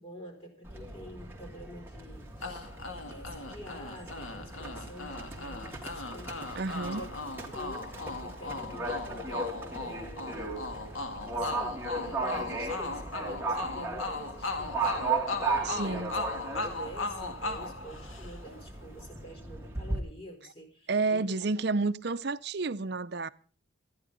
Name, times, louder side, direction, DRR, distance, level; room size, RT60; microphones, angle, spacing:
voice 1, 0.0-2.7 3.1-7.1 7.4-10.5 11.3-15.0 15.4-16.2 16.6-21.4, equal, 30° left, 4.5 m, -47 dB
Livestock farm animals working animals, 0.6-20.0, right 3 dB, 10° right, 2.1 m, -37 dB
sound 1, 2.4-18.6, left 3 dB, 85° left, 2.1 m, -38 dB
voice 2, 6.6-7.0 15.6-16.2 20.9-23.3, right 3 dB, 55° right, 0.6 m, -30 dB
14.5 x 10.0 x 5.3 m
head